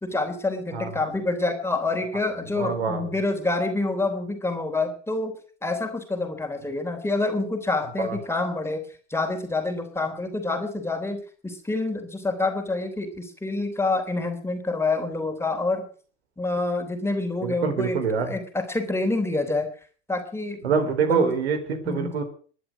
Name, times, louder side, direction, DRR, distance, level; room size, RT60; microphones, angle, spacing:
voice 1, 0.0-5.3 5.6-15.9 16.4-19.7 20.1-20.7 21.1-21.3 21.8-22.2, left 2 dB, 5° left, 5 dB, 3.4 m, -27 dB
voice 2, 2.5-3.0 8.0-8.2 17.4-18.3 20.6-22.2, right 5 dB, 65° right, 8 dB, 4.3 m, -25 dB
20.5 x 11.0 x 6.1 m, 0.43 s
figure-of-eight pair, 85°, 34 cm